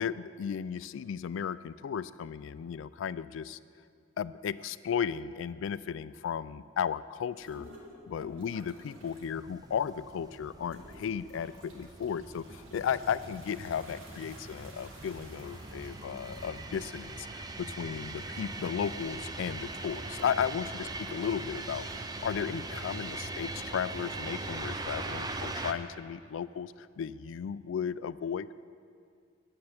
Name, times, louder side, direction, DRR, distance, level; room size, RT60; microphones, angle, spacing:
voice 1, 0.0-3.6 4.2-7.7 8.1-28.5, left 7 dB, 65° left, 17 dB, 0.3 m, -35 dB
sound 1, 7.3-9.3 9.7-10.2 10.6-23.3, equal, 75° right, 1.8 m, -55 dB
sound 2, 9.0-25.7, right 2 dB, 20° right, 0.5 m, -41 dB
9.9 x 7.6 x 7.0 m, 2.2 s
head